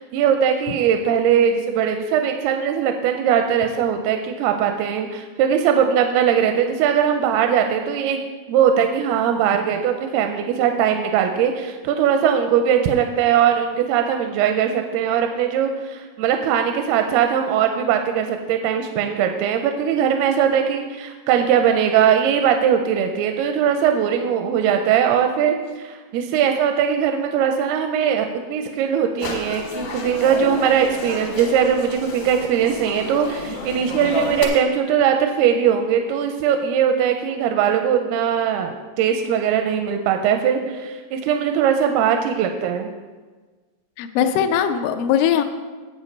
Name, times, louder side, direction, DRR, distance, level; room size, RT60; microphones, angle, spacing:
voice 1, 0.0-8.2 8.5-42.9, right 8 dB, 85° right, 5 dB, 2.5 m, -20 dB
sound 1, 29.2-34.5, left 3 dB, 60° left, 2.6 m, -31 dB
voice 2, 44.0-45.4, left 9 dB, 80° left, 7 dB, 2.0 m, -20 dB
8.2 x 8.0 x 5.2 m, 1.4 s
omnidirectional pair, 4.5 m